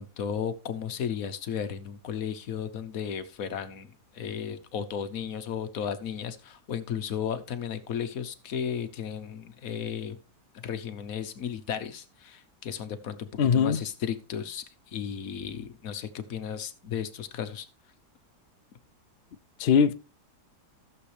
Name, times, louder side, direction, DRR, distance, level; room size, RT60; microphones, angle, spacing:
voice 1, 0.0-10.2 10.5-17.7, left 8 dB, 60° left, 1.3 m, -34 dB
voice 2, 13.4-13.8 19.6-19.9, left 7 dB, 85° left, 0.5 m, -21 dB
14.5 x 7.2 x 3.3 m
omnidirectional pair, 1.7 m